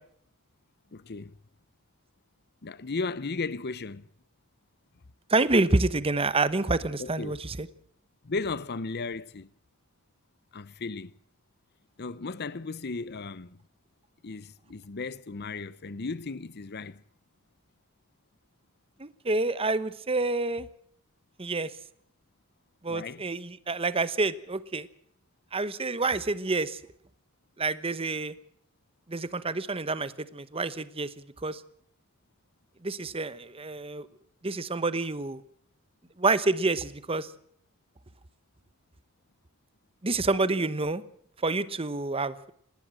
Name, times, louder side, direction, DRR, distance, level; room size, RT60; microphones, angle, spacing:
voice 1, 0.9-1.3 2.6-4.1 7.0-7.4 8.2-9.5 10.5-11.1 12.0-13.6 14.2-17.0 22.9-23.2, left 3 dB, 50° left, 0.7 m, -35 dB
voice 2, 5.3-7.7 19.0-20.7 21.4-21.7 22.8-24.9 25.5-26.8 27.6-28.3 29.1-31.1 31.4-31.6 32.8-34.1 34.4-35.4 36.2-37.3 40.0-41.0 41.4-42.5, right 3 dB, 25° right, 1.0 m, -28 dB
19.0 x 19.0 x 7.6 m
head